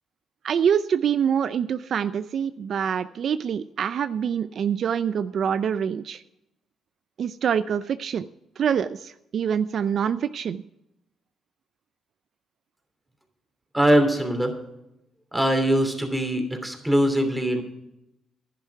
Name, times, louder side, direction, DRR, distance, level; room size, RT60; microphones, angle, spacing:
voice 1, 0.4-6.2 7.2-8.2 8.6-10.6, right 8 dB, 60° right, 13 dB, 0.4 m, -25 dB
voice 2, 13.7-14.6 15.3-17.6, equal, 5° right, 4 dB, 2.9 m, -22 dB
11.0 x 11.0 x 4.7 m, 0.84 s
cardioid pair, 90°, 0 cm